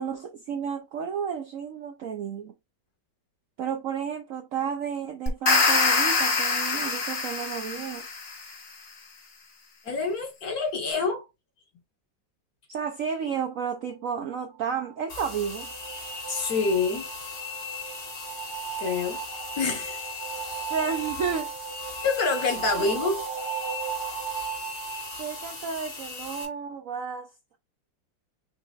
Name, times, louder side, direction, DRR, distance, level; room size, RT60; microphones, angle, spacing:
voice 1, 0.0-2.5 3.6-8.1 12.7-15.7 20.7-21.5 22.8-22.9 25.2-27.3, right 7 dB, 70° right, 0.8 m, -32 dB
sound 1, 5.3-8.4, left 4 dB, 40° left, 1.0 m, -24 dB
voice 2, 9.8-11.2 16.3-17.1 18.8-19.2 19.6-20.1 22.0-23.2, left 4 dB, 55° left, 1.6 m, -27 dB
sound 2, 14.3-25.9, right 9 dB, 40° right, 1.0 m, -37 dB
sound 3, 15.1-26.5, left 5 dB, 90° left, 3.1 m, -38 dB
5.9 x 3.2 x 2.3 m
omnidirectional pair, 2.0 m